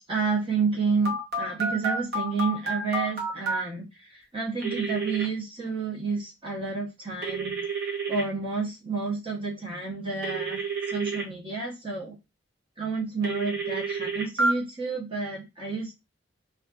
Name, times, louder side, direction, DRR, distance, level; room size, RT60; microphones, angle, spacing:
voice 1, 0.1-3.8 4.1-7.6 8.1-12.1 12.8-15.9, right 4 dB, 30° right, -3 dB, 0.7 m, -30 dB
Telephone, 1.0-3.6 4.6-5.2 7.2-8.2 10.2-11.2 13.2-14.5, right 3 dB, 55° right, 0.9 m, -29 dB
2.4 x 2.4 x 2.2 m, 0.24 s
head